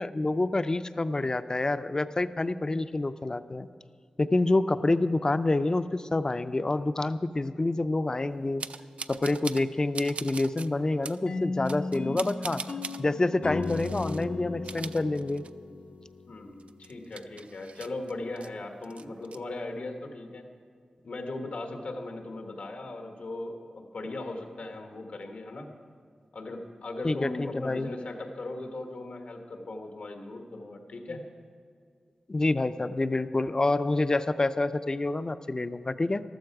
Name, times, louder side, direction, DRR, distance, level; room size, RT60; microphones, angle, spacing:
voice 1, 0.0-3.7 4.2-8.6 9.1-12.6 13.0-15.4 27.0-27.9 32.3-36.2, left 2 dB, 30° left, 12 dB, 0.4 m, -27 dB
sound 1, 8.6-9.7 9.9-10.7 11.0-11.2 11.7-13.0 13.6-14.2 14.5-15.7 16.1-16.2 16.6-18.5 18.8-19.4, right 4 dB, 75° right, 0.4 m, -41 dB
sound 2, 11.3-16.4, left 3 dB, 75° left, 0.7 m, -36 dB
voice 2, 16.3-20.4 21.0-25.7 26.3-31.2, left 2 dB, 90° left, 3 dB, 1.4 m, -38 dB
14.5 x 13.0 x 4.7 m, 2.1 s
wide cardioid pair, 105°, 2 cm